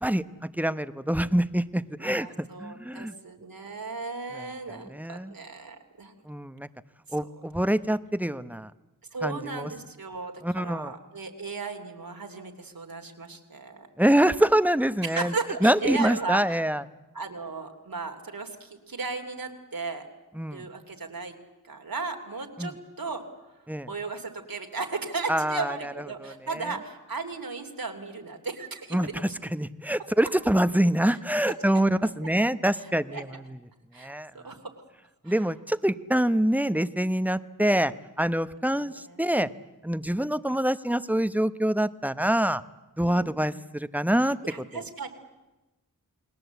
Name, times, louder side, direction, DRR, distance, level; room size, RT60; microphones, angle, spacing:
voice 1, 0.0-3.1 4.3-5.3 6.3-6.7 7.1-8.7 9.2-9.7 10.4-10.9 14.0-15.3 15.6-16.8 20.4-20.6 22.6-22.7 23.7-23.9 25.3-25.9 26.2-26.7 28.9-29.1 29.5-33.4 34.0-34.3 35.2-39.5 39.8-42.6 43.0-44.6, right 1 dB, 5° right, 14 dB, 0.9 m, -25 dB
voice 2, 2.0-6.1 9.1-13.9 15.0-16.6 17.1-20.1 20.5-21.3 21.6-23.2 23.9-29.1 31.1-31.2 33.1-33.2 33.9-34.7 35.2-35.4 39.1-39.5 43.0-43.4 44.4-45.1, right 4 dB, 85° right, 4 dB, 2.9 m, -35 dB
29.0 x 20.5 x 8.2 m, 1.1 s
wide cardioid pair, 75°, 34 cm